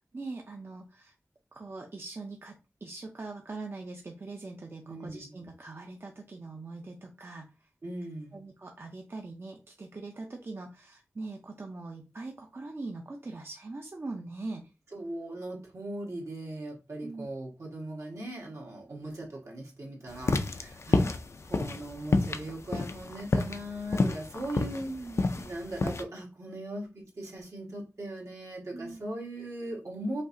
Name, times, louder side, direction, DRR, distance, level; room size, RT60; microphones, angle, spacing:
voice 1, 0.1-1.1 1.5-2.5 2.8-7.5 8.3-14.7 17.0-17.3 20.9-21.2 24.9-25.5 28.7-29.0, right 3 dB, 50° right, 2 dB, 0.6 m, -42 dB
voice 2, 4.9-5.3 7.8-8.4 14.9-21.0 21.5-24.9 25.4-30.2, right 1 dB, 80° right, -2 dB, 1.5 m, -39 dB
sound 1, 20.2-26.0, left 3 dB, 65° left, 0.4 m, -28 dB
5.2 x 2.8 x 2.6 m, 0.29 s
wide cardioid pair, 75°, 5 cm